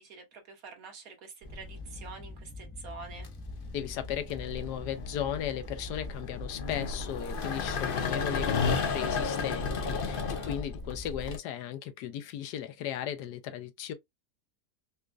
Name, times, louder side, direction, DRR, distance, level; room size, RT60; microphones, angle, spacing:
voice 1, 0.0-3.3 10.1-10.5, right 4 dB, 65° right, 1.6 m, -47 dB
sound 1, 1.4-11.3, left 2 dB, 10° right, 0.5 m, -45 dB
sound 2, 1.5-2.0 3.1-11.4, left 5 dB, 60° left, 0.5 m, -33 dB
voice 2, 3.7-13.9, left 10 dB, 90° left, 1.3 m, -36 dB
4.2 x 2.4 x 2.4 m
omnidirectional pair, 1.7 m